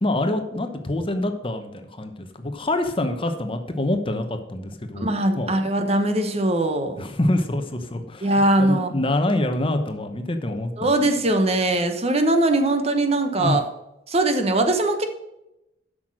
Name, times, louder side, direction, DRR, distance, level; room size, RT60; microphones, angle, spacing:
voice 1, 0.0-5.1 5.3-5.5 7.0-8.3 8.6-10.9 13.4-13.6, left 1 dB, 30° left, 7 dB, 0.9 m, -25 dB
voice 2, 5.0-7.0 8.2-9.0 10.8-13.6 14.1-15.1, right 1 dB, 35° right, 6 dB, 1.0 m, -21 dB
8.0 x 6.2 x 6.3 m, 0.89 s
head